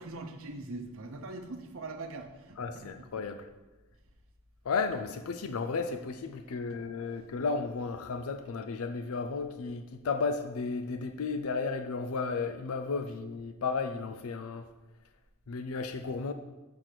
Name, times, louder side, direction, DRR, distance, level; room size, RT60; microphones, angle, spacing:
voice 1, 0.0-2.9, right 2 dB, 70° right, 3 dB, 0.8 m, -42 dB
voice 2, 2.6-3.5 4.7-14.7 15.5-16.3, left 4 dB, 80° left, 8 dB, 0.5 m, -33 dB
7.5 x 4.9 x 5.9 m, 1.1 s
head